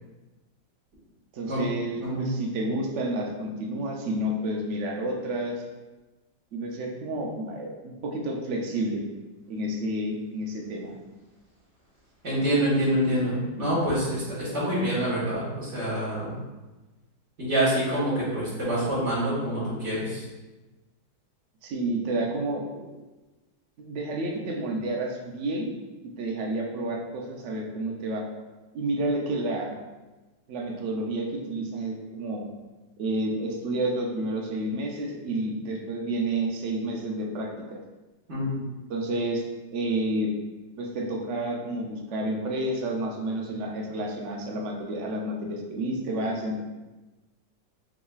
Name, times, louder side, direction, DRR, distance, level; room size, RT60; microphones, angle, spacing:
voice 1, 1.3-5.6 6.5-9.0 9.5-10.9 21.6-22.9 23.8-25.7 26.0-28.2 28.7-29.7 30.5-32.4 33.0-37.8 38.9-39.4 39.7-40.3 40.8-46.6, right 1 dB, 85° right, 0 dB, 0.6 m, -30 dB
voice 2, 12.2-16.4 17.4-20.2 38.3-38.6, right 1 dB, 40° right, -9 dB, 1.9 m, -26 dB
6.0 x 3.0 x 2.4 m, 1.2 s
omnidirectional pair, 2.0 m